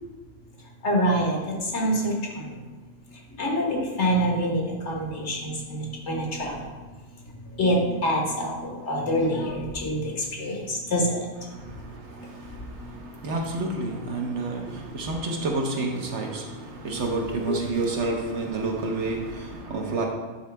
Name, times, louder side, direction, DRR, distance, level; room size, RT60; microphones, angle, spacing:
voice 1, 0.8-2.5 3.4-4.6 4.9-6.6 7.6-7.8 8.0-11.0 16.9-17.0 17.5-17.6, equal, 75° left, -1 dB, 1.7 m, -26 dB
voice 2, 13.2-14.6 14.9-16.4 16.8-19.2 19.7-20.1, right 3 dB, 75° right, 1 dB, 1.3 m, -28 dB
10.0 x 4.0 x 3.4 m, 1.3 s
omnidirectional pair, 1.2 m